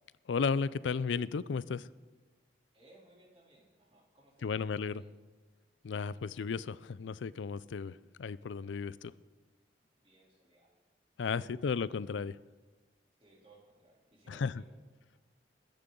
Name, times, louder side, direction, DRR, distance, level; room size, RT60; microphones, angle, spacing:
voice 1, 0.3-1.9 4.4-5.0 5.8-9.1 11.2-12.4 14.3-14.5, left 5 dB, 80° left, 0.4 m, -34 dB
voice 2, 2.7-5.1 10.0-10.7 11.3-11.7 13.2-15.2, right 1 dB, 30° right, 3.2 m, -62 dB
20.5 x 10.5 x 3.8 m
head